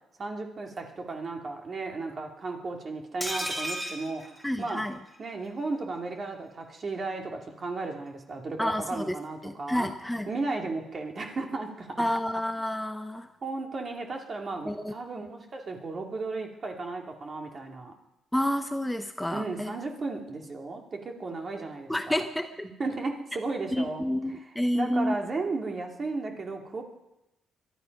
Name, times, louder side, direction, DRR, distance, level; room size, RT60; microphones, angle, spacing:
voice 1, 0.2-4.8 5.2-9.9 10.3-12.0 13.4-17.9 19.3-22.2 22.8-24.1 24.7-26.8, right 3 dB, 40° right, 2 dB, 2.5 m, -34 dB
sound 1, 3.2-5.2 5.5-5.6 5.8-6.0, equal, 10° right, 3.1 m, -34 dB
voice 2, 4.4-5.0 8.6-9.2 9.4-10.3 12.0-13.3 14.6-14.9 18.3-19.7 21.9-22.6 23.7-25.2, left 1 dB, 5° left, 7 dB, 0.8 m, -29 dB
22.5 x 12.0 x 5.3 m, 0.92 s
cardioid pair, 90°, 0 cm